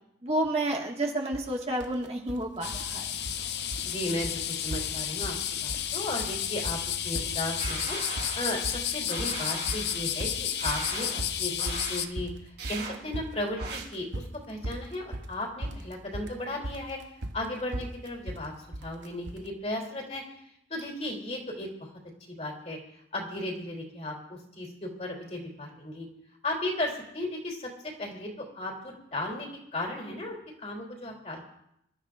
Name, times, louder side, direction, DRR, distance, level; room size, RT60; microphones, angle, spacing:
voice 1, 0.2-3.1, right 1 dB, 35° right, 0 dB, 1.7 m, -30 dB
sound 1, 1.3-1.5 1.8-2.4 2.7-3.5 3.7-4.0 4.2-4.4 4.7-5.4 5.7-6.4 6.7-19.5, right 1 dB, 85° right, 1.0 m, -38 dB
sound 2, 2.6-12.1, left 10 dB, 65° left, 0.7 m, -32 dB
voice 2, 3.8-17.0 17.3-18.5 18.8-20.2 20.7-21.7 22.4-22.8 23.1-26.1 26.4-31.4, left 1 dB, 35° left, 0 dB, 3.2 m, -35 dB
sound 3, 7.6-8.7 9.1-10.0 10.6-11.2 11.6-12.1 12.6-13.0 13.6-13.8, right 5 dB, 60° right, 3.9 m, -39 dB
26.0 x 13.0 x 2.5 m, 0.79 s
head